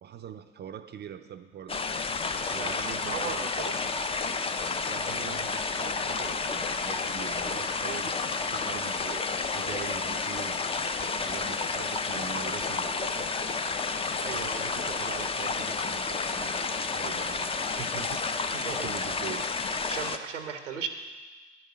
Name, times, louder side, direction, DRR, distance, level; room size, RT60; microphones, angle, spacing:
voice 1, 0.0-1.9 2.5-3.5 4.9-8.2 8.5-10.6 10.8-13.3 14.3-18.2 18.8-19.5, right 9 dB, 30° right, 9 dB, 0.5 m, -42 dB
sound 1, 1.7-20.2, left 4 dB, 15° left, 0.5 m, -31 dB
voice 2, 2.4-3.8 14.2-14.6 18.5-18.9 19.9-20.9, right 7 dB, 90° right, 6 dB, 1.0 m, -37 dB
sound 2, 4.4-11.6, left 5 dB, 65° left, 1.4 m, -51 dB
10.5 x 5.3 x 8.1 m, 1.3 s
hypercardioid pair, 70°, 36 cm